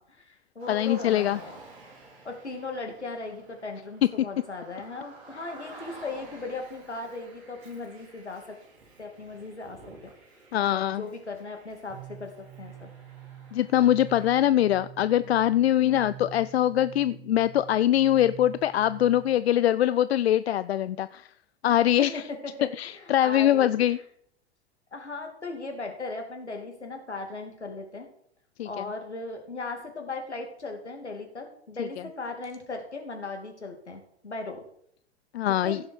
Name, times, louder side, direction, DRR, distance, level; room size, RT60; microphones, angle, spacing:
voice 1, 0.0-1.6 2.2-8.6 9.0-10.1 10.6-12.9 15.8-16.1 21.8-23.9 24.9-28.1 28.6-34.6 35.6-35.8, left 3 dB, 85° left, 4 dB, 2.8 m, -38 dB
Car, 0.6-14.3, right 2 dB, 70° right, 5.5 m, -51 dB
voice 2, 0.7-1.4 10.5-11.0 13.5-21.3 21.6-22.2 22.8-24.0 28.6-28.9 31.8-31.9 35.3-35.8, left 12 dB, 70° left, 15 dB, 0.5 m, -23 dB
sound 1, 11.9-19.5, right 10 dB, 50° right, 4.0 m, -46 dB
16.0 x 7.3 x 4.7 m, 0.67 s
figure-of-eight pair, 95°, 33 cm